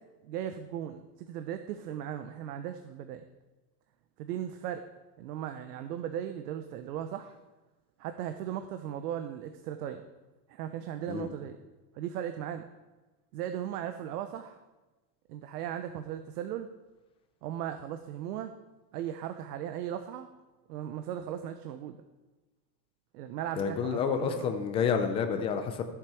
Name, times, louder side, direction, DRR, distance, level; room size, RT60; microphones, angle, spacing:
voice 1, 0.2-3.2 4.2-4.8 5.2-7.4 8.0-10.0 10.5-11.6 12.0-12.7 13.3-14.6 15.3-16.7 17.4-18.5 18.9-20.3 20.7-22.0 23.1-24.5, right 10 dB, 80° right, 8 dB, 0.9 m, -37 dB
voice 2, 23.6-25.8, left 6 dB, 15° left, 6 dB, 0.4 m, -29 dB
14.0 x 7.5 x 4.7 m, 1.2 s
supercardioid pair, 165°, 46 cm